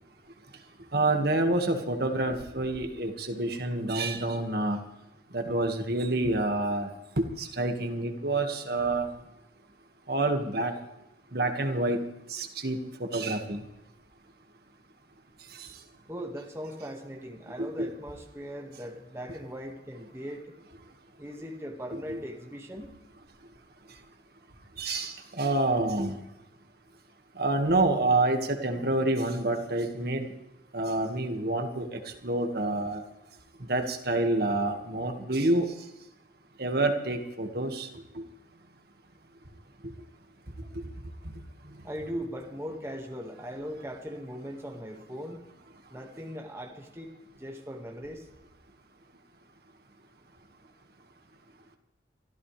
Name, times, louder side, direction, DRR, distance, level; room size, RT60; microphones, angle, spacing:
voice 1, 0.9-4.8 5.3-6.9 7.2-9.1 10.1-10.7 11.3-12.0 12.3-13.6 15.6-15.7 17.6-17.9 22.1-22.2 24.8-26.2 27.4-30.3 30.7-33.0 33.7-35.7 36.6-37.9 38.1-38.2, right 2 dB, 55° right, 4 dB, 1.9 m, -28 dB
voice 2, 16.1-20.5 21.2-22.9 41.8-45.4 45.9-47.1 47.4-48.3, equal, 15° right, 1 dB, 1.9 m, -39 dB
24.5 x 14.5 x 3.4 m, 0.93 s
head